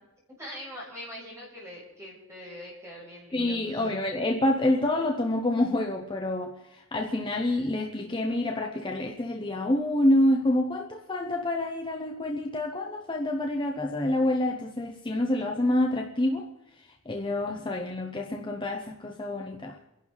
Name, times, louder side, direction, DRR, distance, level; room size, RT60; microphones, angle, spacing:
voice 1, 0.4-3.9, equal, 15° right, 6.7 m, -43 dB
voice 2, 3.3-16.5 17.1-19.8, left 1 dB, 20° left, 0.8 m, -27 dB
29.5 x 11.5 x 4.0 m
head